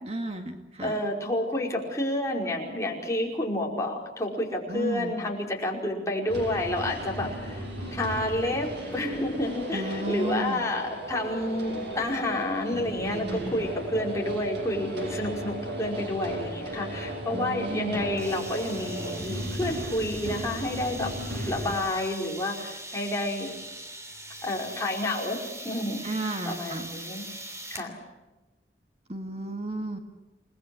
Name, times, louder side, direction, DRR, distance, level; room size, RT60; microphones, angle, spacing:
voice 1, 0.0-1.0 4.7-5.2 9.7-10.7 17.3-18.0 26.0-26.9 29.1-30.0, right 2 dB, 35° right, 4 dB, 1.9 m, -33 dB
voice 2, 0.8-7.6 7.9-21.1 21.4-23.5 24.4-25.4 25.6-26.1 26.4-27.2 27.7-28.0, left 1 dB, 15° left, -1 dB, 5.1 m, -30 dB
sound 1, 6.3-21.8, equal, 70° right, 7.3 m, -36 dB
sound 2, 18.2-27.9, right 1 dB, 15° right, 3.1 m, -41 dB
29.0 x 20.5 x 7.9 m, 1.1 s
head